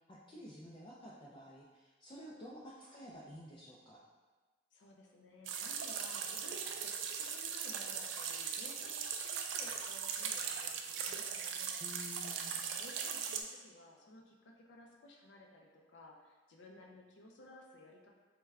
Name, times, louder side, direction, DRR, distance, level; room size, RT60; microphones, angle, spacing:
voice 1, 0.1-4.0 11.8-12.7, equal, 25° left, -5 dB, 0.3 m, -51 dB
voice 2, 2.1-2.6 4.7-11.7 12.8-18.1, left 1 dB, 80° left, 0 dB, 0.5 m, -57 dB
sound 1, 5.5-13.4, right 7 dB, 90° right, 0.3 m, -39 dB
3.4 x 2.2 x 3.4 m, 1.3 s
head